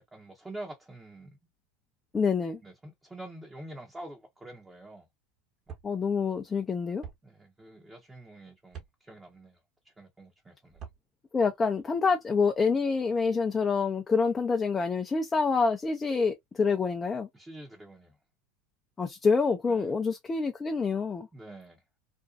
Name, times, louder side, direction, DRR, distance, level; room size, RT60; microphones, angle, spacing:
voice 1, 0.1-1.3 2.6-5.1 7.2-10.8 17.3-18.2 19.7-19.9 21.3-21.8, right 1 dB, 15° right, 0.8 m, -46 dB
voice 2, 2.1-2.6 5.8-7.0 11.3-17.3 19.0-21.3, left 5 dB, 20° left, 0.5 m, -27 dB
sound 1, 5.7-5.9 7.0-7.2 8.7-8.9 10.7-11.0, right 8 dB, 40° right, 1.1 m, -43 dB
2.5 x 2.2 x 2.4 m
hypercardioid pair, 90°, 0 cm